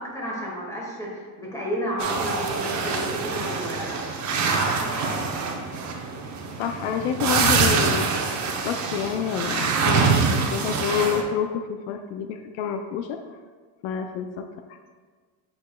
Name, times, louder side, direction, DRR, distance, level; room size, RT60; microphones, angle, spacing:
voice 1, 0.0-5.3, equal, 5° left, -4 dB, 1.8 m, -32 dB
sound 1, 2.0-11.2, right 5 dB, 35° right, 0.8 m, -25 dB
voice 2, 6.6-8.1 8.6-13.2 13.8-14.5, left 7 dB, 75° left, 7 dB, 0.6 m, -28 dB
8.1 x 5.2 x 2.3 m, 1.5 s
cardioid pair, 120°, 48 cm